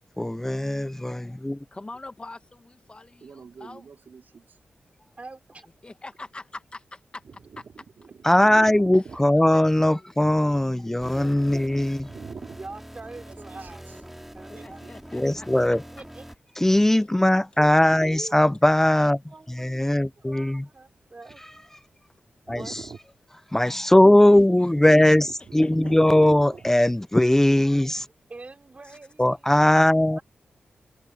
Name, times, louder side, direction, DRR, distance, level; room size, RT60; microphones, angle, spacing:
voice 1, 0.2-1.6 8.2-12.1 15.1-15.8 16.6-19.2 19.6-20.6 22.5-22.8 23.5-25.3 25.5-28.1 29.2-30.2, left 1 dB, 10° left, 0.5 m, -19 dB
voice 2, 1.7-3.9 5.8-7.2 8.9-9.2 9.5-10.1 14.5-15.8 24.2-24.7 25.0-25.1 25.4-25.9 28.9-29.0, left 2 dB, 30° left, 1.8 m, -44 dB
voice 3, 3.2-4.6 7.2-9.2 9.8-9.9 12.1-12.6 13.3-14.0 14.5-14.9 22.5-23.0 24.7-26.7, right 5 dB, 70° right, 4.3 m, -44 dB
voice 4, 5.2-5.7 11.1-11.4 12.6-13.9 14.3-15.0 15.9-16.2 17.6-18.4 19.3-21.4 22.5-22.7 28.3-29.5 30.2-30.3, right 3 dB, 40° right, 4.9 m, -44 dB
sound 1, 11.0-16.4, equal, 5° right, 3.4 m, -44 dB
cardioid pair, 60°, 3 cm